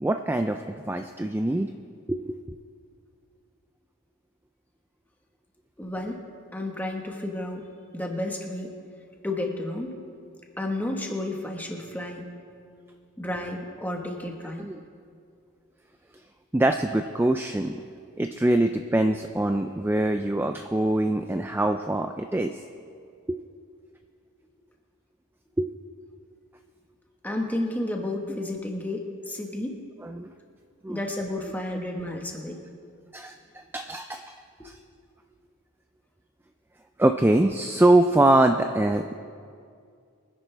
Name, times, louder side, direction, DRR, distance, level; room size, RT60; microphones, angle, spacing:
voice 1, 0.0-1.7 2.1-2.4 14.6-14.8 16.5-17.8 18.2-22.6 23.3-23.4 25.6-25.7 30.0-30.3 30.8-31.0 33.1-34.3 34.6-34.8 37.0-39.1, right 1 dB, 10° right, 6 dB, 0.3 m, -23 dB
voice 2, 5.8-6.3 6.5-7.6 7.9-8.7 9.2-10.0 10.6-12.3 13.2-14.7 27.2-29.8 30.9-32.6, left 1 dB, 10° left, 1 dB, 1.3 m, -31 dB
24.0 x 10.5 x 3.4 m, 2.3 s
head